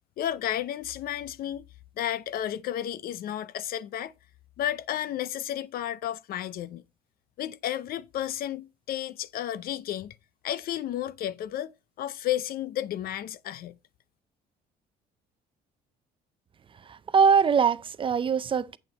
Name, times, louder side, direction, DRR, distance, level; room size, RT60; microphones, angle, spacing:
voice 1, 0.2-1.6 2.0-4.1 4.6-6.8 7.4-10.1 10.4-11.7 12.0-13.7, left 11 dB, 60° left, 0.5 m, -32 dB
voice 2, 16.9-18.8, right 6 dB, 30° right, 0.5 m, -22 dB
8.0 x 6.7 x 4.2 m
cardioid pair, 110°, 17 cm